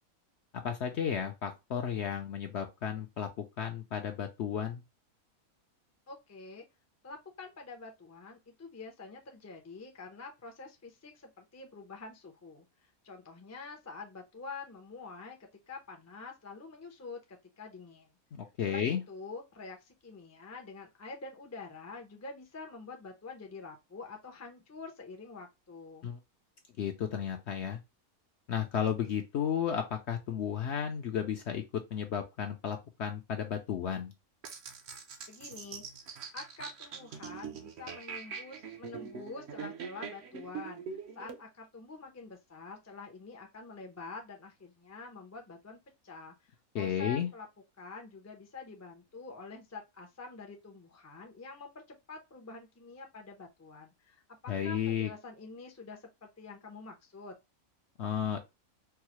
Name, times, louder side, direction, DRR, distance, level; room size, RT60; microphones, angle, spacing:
voice 1, 0.5-4.8 18.3-19.0 26.0-26.2 26.8-27.8 28.5-31.6 31.9-34.1 46.7-47.3 54.5-55.1 58.0-58.4, left 8 dB, 65° left, 0.7 m, -33 dB
voice 2, 6.1-6.6 7.0-18.1 18.7-26.1 35.3-47.5 47.8-57.3, left 4 dB, 25° left, 0.3 m, -47 dB
sound 1, 34.4-41.4, right 6 dB, 60° right, 0.8 m, -43 dB
4.6 x 2.0 x 2.9 m
omnidirectional pair, 1.5 m